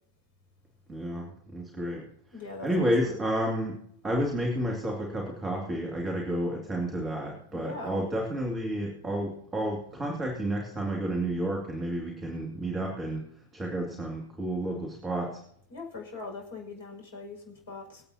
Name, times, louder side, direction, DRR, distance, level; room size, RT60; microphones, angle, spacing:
voice 1, 0.9-2.1 2.6-13.3 13.5-15.4, right 1 dB, 15° right, 0 dB, 2.4 m, -31 dB
voice 2, 2.3-3.3 7.5-8.0 15.7-18.0, left 3 dB, 60° left, 1 dB, 5.6 m, -41 dB
25.5 x 8.5 x 2.9 m, 0.70 s
figure-of-eight pair, 90°, 0 cm